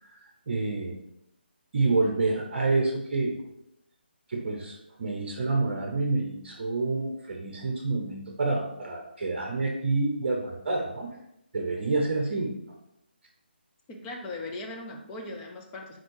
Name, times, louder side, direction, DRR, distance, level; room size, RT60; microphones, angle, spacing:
voice 1, 0.0-1.0 1.7-3.4 4.3-11.1 11.5-12.5, right 3 dB, 45° right, 1 dB, 1.0 m, -28 dB
voice 2, 13.9-16.0, left 2 dB, 15° left, 2 dB, 0.6 m, -39 dB
4.6 x 4.3 x 4.7 m, 0.79 s
figure-of-eight pair, 155°, 6 cm